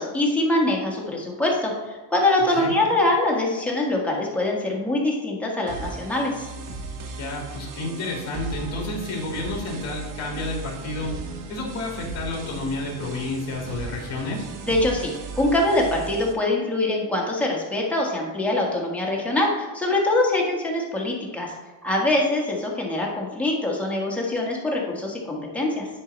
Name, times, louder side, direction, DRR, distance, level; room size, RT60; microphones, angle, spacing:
voice 1, 0.0-6.3 14.6-21.5 21.8-25.9, left 2 dB, 5° left, -3 dB, 1.6 m, -24 dB
sound 1, 5.7-16.3, right 4 dB, 45° right, 1.0 m, -36 dB
voice 2, 7.2-11.1 11.5-14.5, left 2 dB, 35° left, -1 dB, 2.7 m, -30 dB
10.0 x 4.7 x 4.0 m, 1.3 s
cardioid pair, 145°, 46 cm